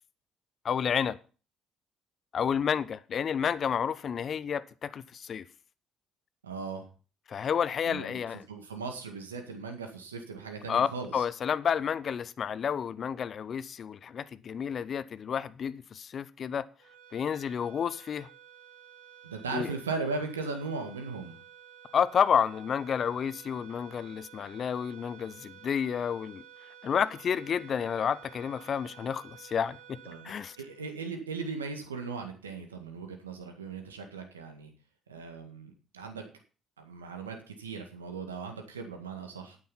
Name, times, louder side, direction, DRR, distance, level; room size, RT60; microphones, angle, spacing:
voice 1, 0.6-1.2 2.3-5.4 7.3-8.4 10.7-16.7 17.1-18.3 19.5-19.7 21.9-26.4 26.8-30.0 30.2-30.6, left 7 dB, 45° left, 0.7 m, -30 dB
voice 2, 6.4-6.8 7.8-8.2 8.5-11.2 19.2-21.4 30.1-34.7 35.1-36.3 36.8-39.6, right 4 dB, 90° right, 1.8 m, -38 dB
sound 1, 16.8-31.4, right 9 dB, 70° right, 1.7 m, -53 dB
11.5 x 9.3 x 5.6 m
hypercardioid pair, 50°, 0 cm